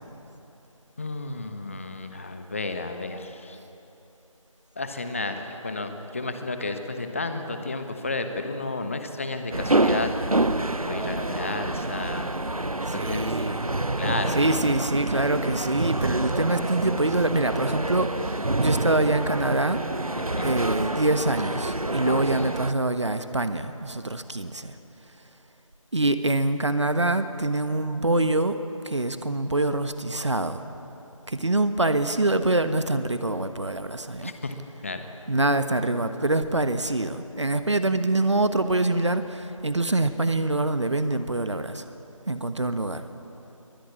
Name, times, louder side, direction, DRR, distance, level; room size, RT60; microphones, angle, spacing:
voice 1, 1.0-3.6 4.8-10.1 10.9-13.6 14.0-14.6 20.2-20.6 22.0-22.4 34.2-34.5 34.8-35.0, left 3 dB, 25° left, 7 dB, 1.2 m, -32 dB
sound 1, 9.5-22.7, right 2 dB, 85° right, 1.1 m, -27 dB
voice 2, 12.9-13.7 14.3-19.8 20.4-24.7 25.9-28.6 28.8-30.6 31.3-34.3 35.3-41.8 42.3-43.0, right 2 dB, 55° right, 10 dB, 1.3 m, -25 dB
22.5 x 20.0 x 8.6 m, 3.0 s
figure-of-eight pair, 165°, 18 cm